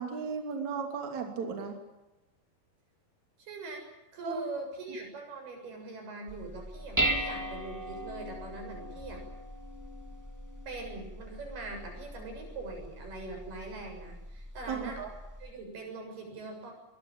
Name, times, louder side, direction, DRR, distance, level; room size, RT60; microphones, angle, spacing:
voice 1, 0.0-1.7 4.2-4.4 14.7-15.1, right 5 dB, 50° right, 4 dB, 4.1 m, -35 dB
voice 2, 3.4-3.8 4.1-9.2 10.7-15.0 15.4-16.7, right 3 dB, 90° right, 3 dB, 9.3 m, -42 dB
Dishes pots and pans, 6.3-15.5, right 1 dB, 10° right, 1.3 m, -38 dB
23.0 x 23.0 x 9.1 m, 0.99 s
omnidirectional pair, 4.4 m